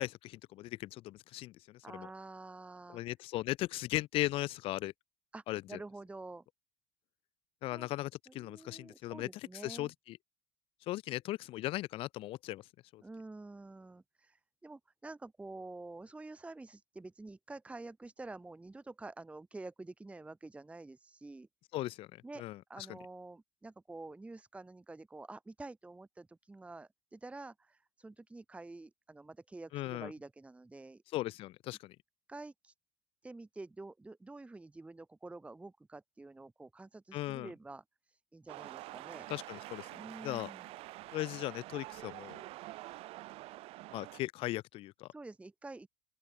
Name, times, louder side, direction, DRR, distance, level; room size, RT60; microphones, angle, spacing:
voice 1, 0.0-2.1 2.9-4.9 5.5-5.8 7.6-10.2 10.8-13.0 21.7-22.9 29.7-30.1 31.1-32.0 37.1-37.5 39.3-40.5 41.1-42.4 43.9-45.1, left 16 dB, 55° left, 0.7 m, -38 dB
voice 2, 1.8-3.0 5.3-6.4 7.7-7.9 8.3-9.9 13.0-21.5 22.2-22.4 22.7-31.0 32.3-32.7 33.2-39.3 40.0-40.7 45.1-45.9, right 2 dB, 10° right, 1.2 m, -48 dB
sound 1, 38.5-44.2, right 18 dB, 60° right, 3.3 m, -47 dB
open air
hypercardioid pair, 85°, 11 cm